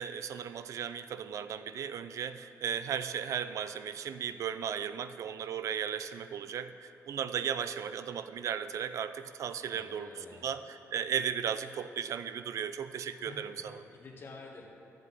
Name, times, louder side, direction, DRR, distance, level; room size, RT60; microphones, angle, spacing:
voice 1, 0.0-13.8, right 8 dB, 70° right, 12 dB, 0.4 m, -36 dB
voice 2, 9.6-10.4 13.2-14.6, left 3 dB, 45° left, -1 dB, 1.5 m, -50 dB
12.0 x 7.9 x 4.0 m, 2.6 s
cardioid pair, 125°, 6 cm